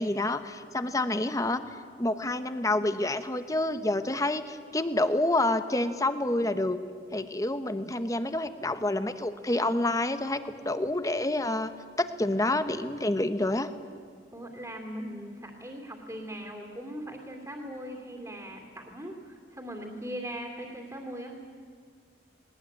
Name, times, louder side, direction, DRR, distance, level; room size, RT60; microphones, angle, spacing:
voice 1, 0.0-1.6 2.0-6.8 7.1-11.7 12.0-13.7, left 2 dB, 20° left, 10 dB, 1.0 m, -28 dB
voice 2, 14.3-21.4, equal, 15° right, 2 dB, 2.7 m, -40 dB
19.5 x 19.5 x 9.6 m, 2.1 s
head